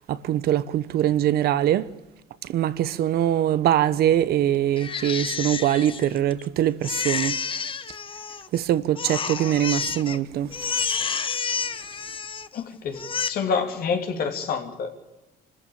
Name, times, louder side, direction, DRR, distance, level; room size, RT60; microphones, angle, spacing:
voice 1, 0.1-1.9 2.5-7.3 8.5-10.5, right 11 dB, 70° right, 1.0 m, -23 dB
Crying sobbing, 4.8-6.4 6.8-8.6 9.0-10.2 10.5-12.6 12.9-13.3, left 6 dB, 30° left, 1.1 m, -29 dB
voice 2, 12.5-14.9, left 5 dB, 60° left, 2.8 m, -27 dB
25.5 x 14.0 x 8.6 m
cardioid pair, 110°, 17 cm